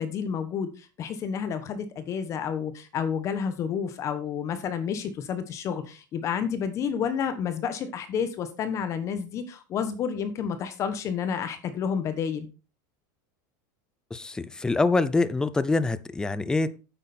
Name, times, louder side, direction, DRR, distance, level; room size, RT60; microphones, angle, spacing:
voice 1, 0.0-12.5, left 7 dB, 30° left, 11 dB, 1.1 m, -30 dB
voice 2, 14.1-16.9, left 3 dB, 5° left, 15 dB, 0.5 m, -25 dB
9.0 x 8.3 x 4.3 m, 0.32 s
supercardioid pair, 160°, 10 cm